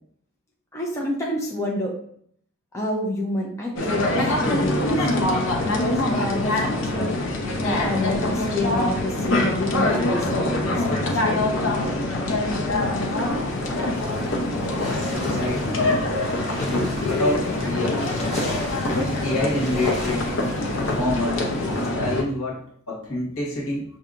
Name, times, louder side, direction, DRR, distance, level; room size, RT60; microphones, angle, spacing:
voice 1, 0.7-1.9 2.7-4.0 4.3-5.3 5.6-7.1 7.6-11.5 15.2-15.3, left 1 dB, 15° left, -2 dB, 0.5 m, -28 dB
sound 1, 3.8-22.2, left 1 dB, 60° left, 0.6 m, -24 dB
sound 2, 12.7-21.9, left 1 dB, 30° left, 1.3 m, -39 dB
voice 2, 14.8-15.9 17.0-18.0 18.9-20.3 20.8-21.5 21.9-23.8, left 1 dB, 80° left, -3 dB, 1.4 m, -27 dB
5.6 x 2.8 x 2.4 m, 0.64 s
head